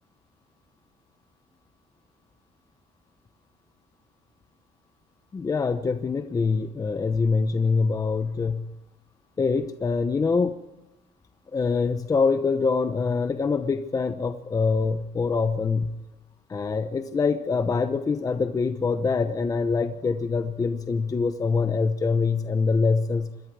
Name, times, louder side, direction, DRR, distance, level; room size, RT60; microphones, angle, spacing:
voice 1, 5.3-8.7 9.4-10.6 11.5-16.0 16.5-23.3, left 4 dB, 20° left, 9 dB, 0.9 m, -24 dB
26.0 x 22.0 x 4.8 m, 0.98 s
cardioid pair, 155°, 16 cm